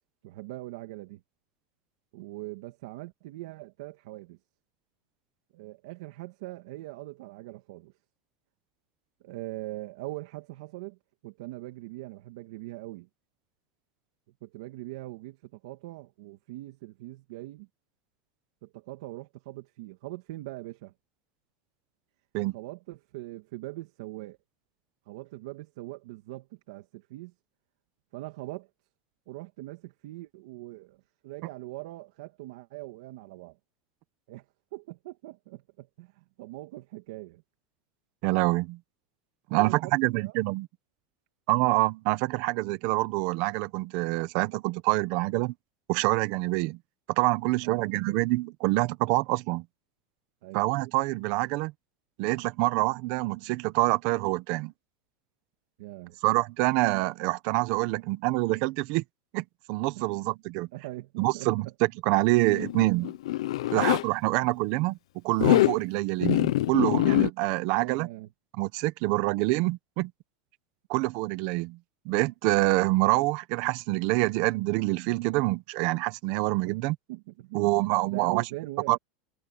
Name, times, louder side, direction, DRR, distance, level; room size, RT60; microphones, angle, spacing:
voice 1, 0.2-1.2 2.1-4.4 5.5-7.9 9.2-11.0 11.2-13.1 14.4-17.7 18.6-20.9 22.5-24.4 25.1-27.3 28.1-28.7 29.3-33.6 34.3-34.5 34.7-37.4 39.5-40.4 47.6-47.9 50.4-50.7 55.8-56.2 60.0-60.3 60.6-61.7 67.7-68.3 76.4-76.8 77.1-77.7 78.0-79.0, right 19 dB, 70° right, 2.5 m, -41 dB
voice 2, 38.2-38.8 39.5-40.7 41.5-45.5 45.9-46.8 47.1-49.6 50.5-51.7 52.2-54.7 56.2-59.0 59.3-60.7 61.2-61.6 62.0-63.1 63.7-65.0 65.2-68.1 68.6-70.1 70.9-71.8 72.0-77.0 77.5-78.4 78.9-79.0, right 21 dB, 50° right, 1.1 m, -26 dB
Zipper (clothing), 62.4-64.0 65.3-65.8 66.2-67.3, left 15 dB, 90° left, 0.9 m, -24 dB
supercardioid pair, 160°, 3 cm